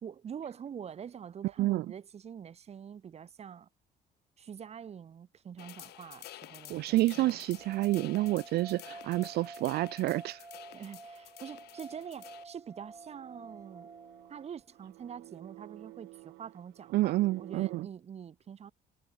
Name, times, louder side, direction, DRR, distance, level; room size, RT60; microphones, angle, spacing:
voice 1, 0.0-3.7 4.4-7.4 10.7-13.9 14.3-18.7, right 8 dB, 40° right, 1.3 m, -45 dB
sound 1, 5.6-12.4, left 16 dB, 75° left, 1.1 m, -51 dB
voice 2, 6.7-10.4 16.9-17.9, right 17 dB, 70° right, 0.5 m, -29 dB
sound 2, 7.5-14.6, right 3 dB, 20° right, 5.2 m, -50 dB
sound 3, 11.9-17.8, right 20 dB, 90° right, 1.5 m, -53 dB
cardioid pair, 110°, 17 cm